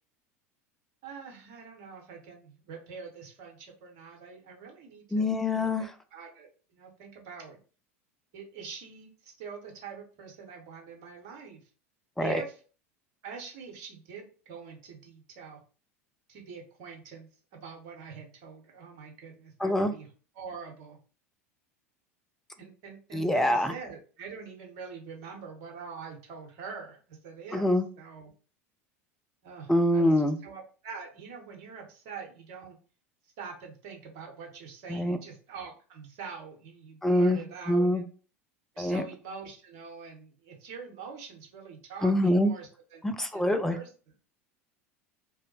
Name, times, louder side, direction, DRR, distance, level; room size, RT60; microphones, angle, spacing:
voice 1, 1.0-5.3 5.8-7.6 8.3-11.6 12.2-12.6 13.2-15.6 16.3-20.1 20.3-21.0 22.6-28.3 29.4-32.8 33.4-38.0 38.7-43.0 43.3-43.9, right 5 dB, 50° right, 1 dB, 0.9 m, -44 dB
voice 2, 5.1-5.9 12.2-12.4 19.6-19.9 23.1-23.7 27.5-27.9 29.7-30.4 34.9-35.2 37.0-37.4 37.7-38.0 38.8-39.0 42.0-42.5 43.0-43.8, left 1 dB, 5° left, 8 dB, 0.3 m, -25 dB
2.6 x 2.1 x 2.8 m, 0.38 s
figure-of-eight pair, 75°, 8 cm